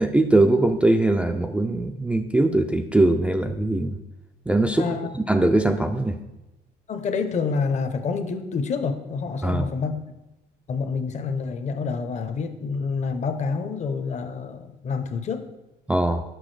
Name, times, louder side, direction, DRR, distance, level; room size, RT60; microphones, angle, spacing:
voice 1, 0.0-4.0 4.5-4.9 5.1-6.2 9.4-9.7 15.9-16.2, right 2 dB, 5° right, 5 dB, 0.3 m, -21 dB
voice 2, 4.8-5.1 6.9-10.0 10.7-15.4, left 5 dB, 45° left, 7 dB, 0.7 m, -27 dB
6.1 x 5.9 x 3.2 m, 1.0 s
cardioid pair, 110°, 17 cm